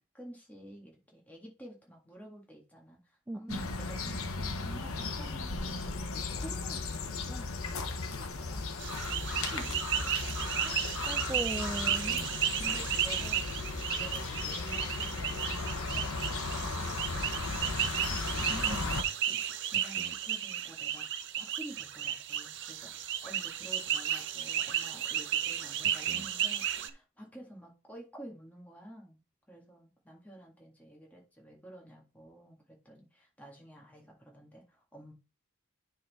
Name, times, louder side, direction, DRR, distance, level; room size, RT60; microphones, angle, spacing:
voice 1, 0.1-7.5 7.9-8.7 9.1-10.2 12.6-16.2 16.5-21.1 21.4-29.2 29.5-35.1, right 1 dB, 5° left, 1.8 m, -51 dB
voice 2, 3.3-3.7 10.6-12.2 18.5-18.9, right 1 dB, 10° right, 0.3 m, -39 dB
sound 1, 3.5-19.0, left 3 dB, 65° left, 1.0 m, -36 dB
sound 2, 8.8-26.9, right 10 dB, 55° right, 0.6 m, -34 dB
9.3 x 3.9 x 4.2 m
head